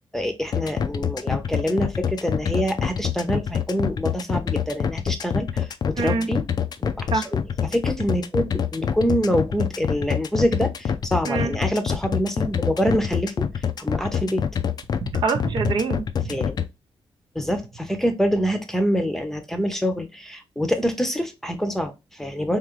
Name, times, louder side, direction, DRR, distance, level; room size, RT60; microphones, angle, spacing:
voice 1, 0.1-6.4 6.8-7.2 7.6-14.4 16.3-16.6 17.3-22.6, equal, 5° left, 0.7 m, -25 dB
sound 1, 0.5-16.6, left 7 dB, 45° left, 0.4 m, -25 dB
voice 2, 6.0-6.3 7.1-7.3 11.3-11.5 15.0-16.4, right 4 dB, 60° right, 0.6 m, -25 dB
3.7 x 2.9 x 3.0 m
cardioid pair, 115°, 9 cm